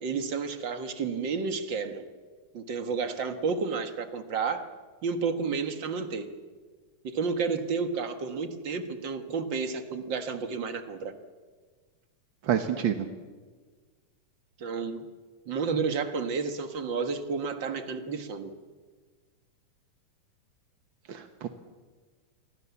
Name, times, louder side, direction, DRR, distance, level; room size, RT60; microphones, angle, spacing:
voice 1, 0.0-2.0 2.5-4.7 5.0-6.3 7.0-11.1 14.6-15.0 15.5-18.5, right 5 dB, 45° right, 7 dB, 1.7 m, -31 dB
voice 2, 12.4-13.0 21.1-21.5, right 9 dB, 60° right, 6 dB, 1.3 m, -28 dB
29.0 x 22.5 x 7.2 m, 1.4 s
omnidirectional pair, 3.9 m